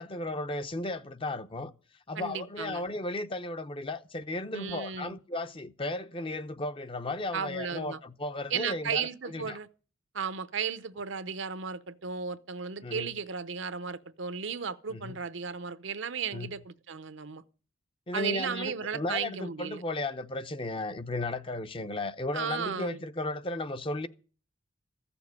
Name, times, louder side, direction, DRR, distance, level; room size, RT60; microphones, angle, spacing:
voice 1, 0.0-1.7 2.1-9.6 12.8-13.1 14.9-15.2 16.3-16.5 18.1-24.1, left 2 dB, 25° left, 0.7 m, -35 dB
voice 2, 2.2-2.8 4.5-5.2 7.3-8.0 8.5-9.7 10.1-17.4 18.1-19.8 22.3-23.0, right 6 dB, 65° right, 0.7 m, -35 dB
15.0 x 7.0 x 9.6 m
head